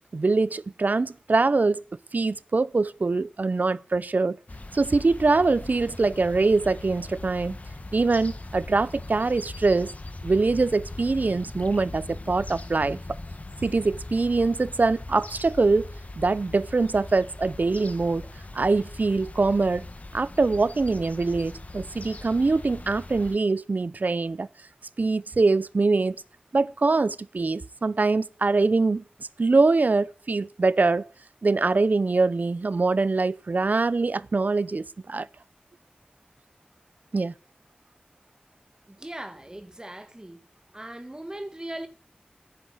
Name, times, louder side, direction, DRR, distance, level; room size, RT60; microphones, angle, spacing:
voice 1, 0.1-1.8 2.1-4.4 4.7-7.6 7.9-9.9 10.2-13.0 13.6-15.9 16.2-18.2 18.5-19.8 20.1-24.5 25.0-26.2 26.5-31.1 31.4-35.3 37.1-37.3, right 3 dB, 70° right, 0.5 m, -23 dB
sound 1, 4.5-23.4, left 2 dB, 55° left, 1.4 m, -40 dB
voice 2, 38.9-40.5 40.7-41.9, right 1 dB, 25° right, 1.7 m, -39 dB
10.5 x 9.4 x 7.9 m
wide cardioid pair, 45°, 3 cm